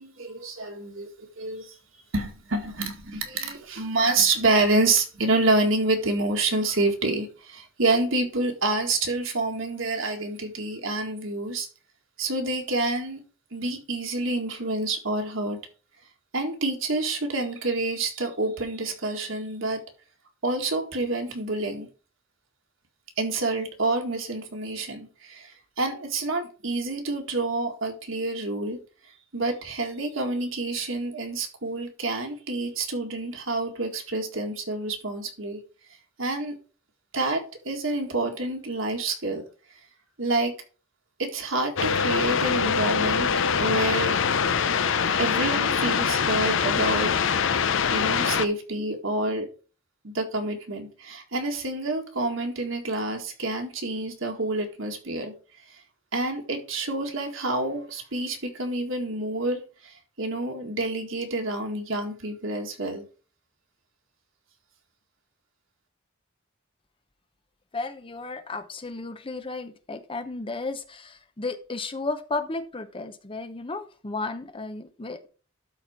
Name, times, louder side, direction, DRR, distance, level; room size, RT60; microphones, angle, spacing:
voice 1, 0.0-1.8 2.1-11.7 12.2-13.2 13.5-15.6 16.3-19.8 20.4-21.9 23.2-28.8 29.3-35.6 36.2-36.5 37.1-39.4 40.2-40.5 41.2-43.3 43.6-44.2 45.2-47.1 47.9-49.5 50.0-55.3 55.7-55.8 56.1-63.0, right 2 dB, 65° right, 1.9 m, -28 dB
sound 1, 41.8-48.5, left 6 dB, 60° left, 0.6 m, -24 dB
voice 2, 67.7-75.3, left 3 dB, 25° left, 0.7 m, -34 dB
12.5 x 4.3 x 4.5 m
head